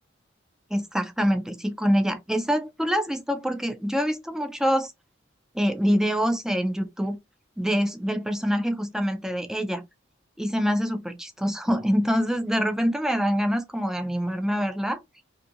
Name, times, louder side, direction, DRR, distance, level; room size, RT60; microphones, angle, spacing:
voice 1, 0.7-4.9 5.5-7.2 7.6-9.8 10.4-15.0, equal, 5° right, 0.4 m, -25 dB
2.6 x 2.6 x 2.6 m
head